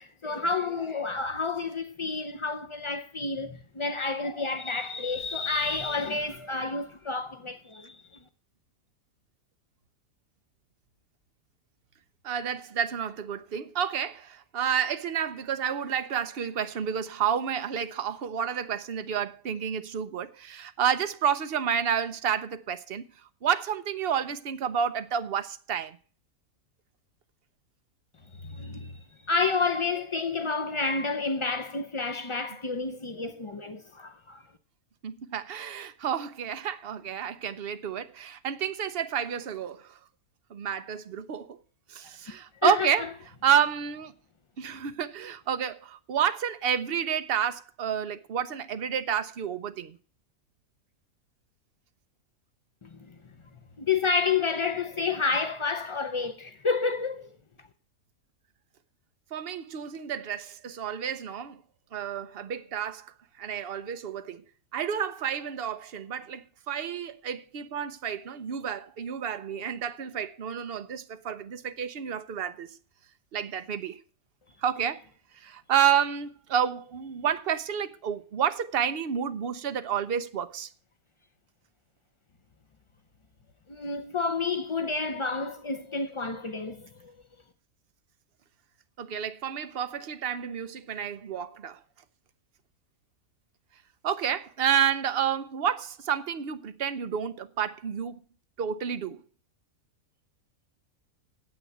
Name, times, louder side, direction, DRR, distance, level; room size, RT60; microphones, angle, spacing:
voice 1, 0.0-8.0 28.4-28.9 29.3-34.4 42.6-42.9 52.8-53.1 53.8-57.3 83.7-87.1, left 4 dB, 50° left, 0.3 m, -30 dB
voice 2, 12.2-23.1 23.4-26.0 35.0-40.0 40.5-41.6 41.9-43.1 43.4-44.1 44.6-50.0 59.3-61.6 61.9-64.4 64.7-72.8 73.3-74.0 74.6-75.0 75.3-80.7 89.0-91.8 94.0-98.2 98.6-99.2, right 8 dB, 50° right, 0.8 m, -30 dB
9.2 x 8.0 x 7.8 m
omnidirectional pair, 1.5 m